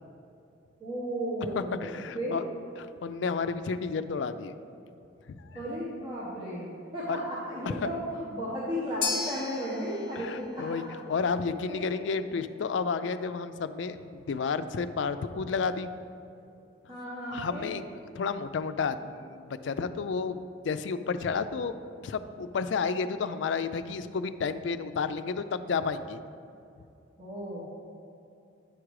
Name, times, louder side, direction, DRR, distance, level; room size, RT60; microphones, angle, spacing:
voice 1, 0.8-2.4 5.5-10.7 11.7-11.9 16.9-17.7 27.2-27.7, equal, 30° right, -9 dB, 1.3 m, -34 dB
voice 2, 1.6-2.4 2.8-4.5 5.3-5.6 7.1-7.2 7.7-7.9 10.2-15.9 17.3-17.9 18.2-26.2, left 5 dB, 75° left, 11 dB, 0.4 m, -31 dB
sound 1, 9.0-17.4, left 5 dB, 25° left, 0.7 m, -41 dB
9.4 x 4.9 x 4.7 m, 2.7 s
head